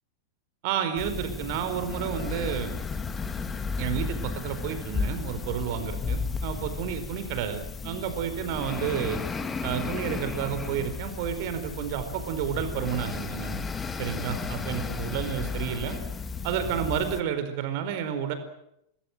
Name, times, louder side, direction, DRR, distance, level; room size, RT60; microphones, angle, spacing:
voice 1, 0.6-2.8 3.8-9.2 9.6-13.6 14.0-16.0 16.4-18.3, right 9 dB, 50° right, 9 dB, 4.5 m, -31 dB
sound 1, 1.0-17.2, left 5 dB, 15° left, 2.2 m, -34 dB
28.0 x 20.5 x 8.0 m, 0.78 s
figure-of-eight pair, 90°, 0 cm